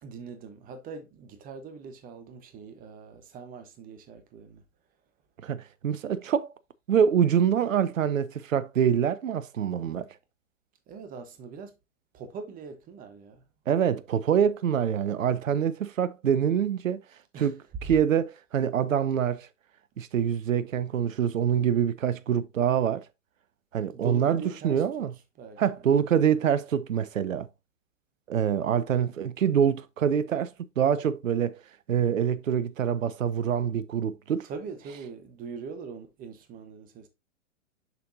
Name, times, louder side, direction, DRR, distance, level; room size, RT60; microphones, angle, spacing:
voice 1, 0.0-4.6 10.9-11.7 12.1-13.4 17.3-17.6 23.9-24.8 25.4-25.8 26.2-26.4 34.4-37.1, right 5 dB, 20° right, 1.1 m, -42 dB
voice 2, 5.4-6.5 6.9-10.1 13.7-17.0 17.4-19.5 20.0-23.1 23.7-25.1 25.6-27.5 28.3-31.6 31.9-34.5, right 8 dB, 80° right, 0.6 m, -25 dB
6.8 x 6.0 x 2.6 m
figure-of-eight pair, 115°, 39 cm